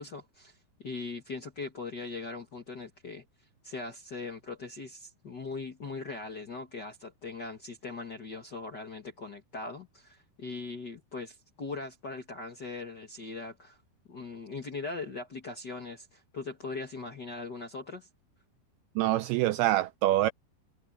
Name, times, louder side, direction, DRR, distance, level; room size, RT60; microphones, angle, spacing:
voice 1, 0.0-3.2 3.6-13.8 14.1-18.1, left 3 dB, 60° left, 1.0 m, -40 dB
voice 2, 19.0-20.3, right 15 dB, 85° right, 2.2 m, -25 dB
omnidirectional pair, 4.9 m